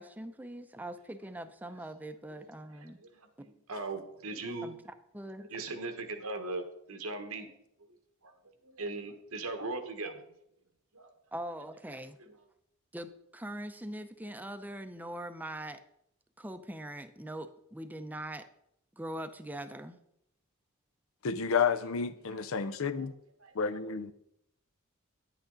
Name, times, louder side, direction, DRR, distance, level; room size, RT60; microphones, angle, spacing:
voice 1, 0.0-3.0 4.6-4.8 5.1-5.5 11.3-12.2 12.9-15.8 16.4-18.5 19.0-20.0, right 1 dB, 10° right, 0.6 m, -42 dB
voice 2, 2.8-4.7 5.4-7.5 8.2-8.3 8.6-10.2 10.9-11.1 22.3-23.1 23.4-23.8, right 2 dB, 90° right, 1.3 m, -40 dB
voice 3, 21.2-23.1 23.5-24.1, left 6 dB, 70° left, 0.6 m, -30 dB
10.0 x 8.4 x 3.9 m
head